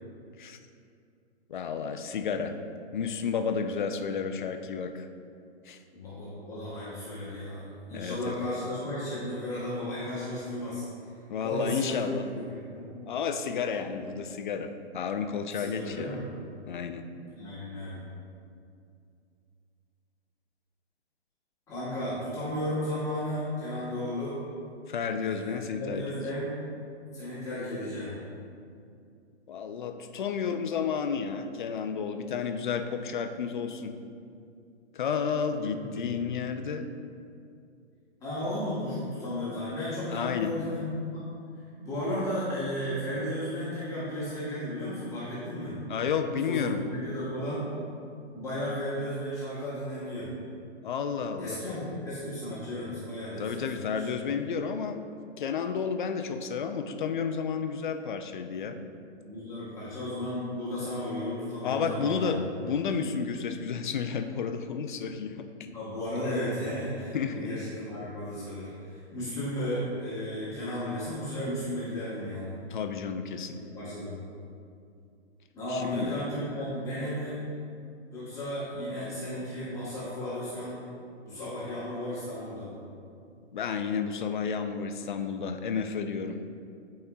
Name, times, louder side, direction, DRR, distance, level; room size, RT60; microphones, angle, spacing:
voice 1, 1.5-2.6 2.9-5.1 5.6-5.8 7.9-8.3 11.3-12.3 13.1-16.2 16.7-17.1 24.9-26.4 29.5-33.9 34.9-36.9 40.1-40.5 45.9-46.8 50.8-51.6 53.4-55.0 55.4-58.8 61.6-65.5 67.1-67.5 72.7-73.6 75.7-76.2 83.5-86.6, left 6 dB, 45° left, 7 dB, 0.5 m, -31 dB
voice 2, 5.9-10.8 11.4-12.9 13.8-14.0 15.5-16.2 17.4-18.0 21.7-24.3 25.2-26.6 27.1-28.1 35.6-36.2 38.2-41.2 41.8-45.8 46.4-47.7 48.3-50.3 51.4-54.1 59.2-62.3 65.7-72.5 73.5-74.2 75.5-77.4 78.1-80.8 81.2-82.8, left 1 dB, 10° left, -11 dB, 1.1 m, -34 dB
12.0 x 4.2 x 2.3 m, 2.4 s
hypercardioid pair, 160°, 34 cm